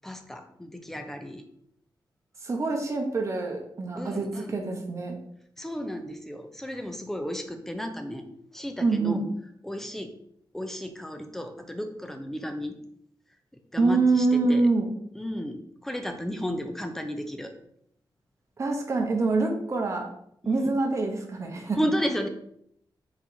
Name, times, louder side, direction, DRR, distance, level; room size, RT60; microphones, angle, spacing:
voice 1, 0.0-1.4 4.0-4.6 5.6-9.2 9.6-10.1 10.5-12.8 13.7-14.7 15.1-17.5 20.4-20.8 21.8-22.3, equal, 5° left, 6 dB, 0.4 m, -33 dB
voice 2, 2.4-5.2 8.8-9.3 13.8-14.9 18.6-20.1 20.5-21.8, right 3 dB, 35° right, 3 dB, 0.7 m, -25 dB
4.6 x 4.3 x 2.6 m, 0.70 s
wide cardioid pair, 175°, 8 cm